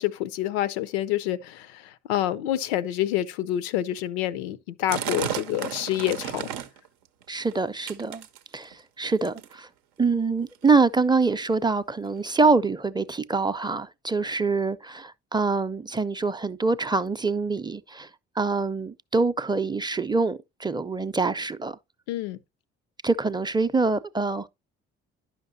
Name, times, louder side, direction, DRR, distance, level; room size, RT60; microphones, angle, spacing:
voice 1, 0.0-6.5 22.1-22.4, left 13 dB, 90° left, 0.5 m, -27 dB
sound 1, 4.9-6.9 7.2-7.6 7.9-8.7 9.2-9.6 10.4-10.5 10.6-10.8 11.4-11.5 12.2-12.3, right 10 dB, 85° right, 0.6 m, -33 dB
voice 2, 7.3-8.3 8.5-9.7 10.0-18.1 18.4-21.8 23.0-24.5, right 4 dB, 15° right, 0.5 m, -25 dB
10.5 x 5.8 x 2.6 m
hypercardioid pair, 55°, 31 cm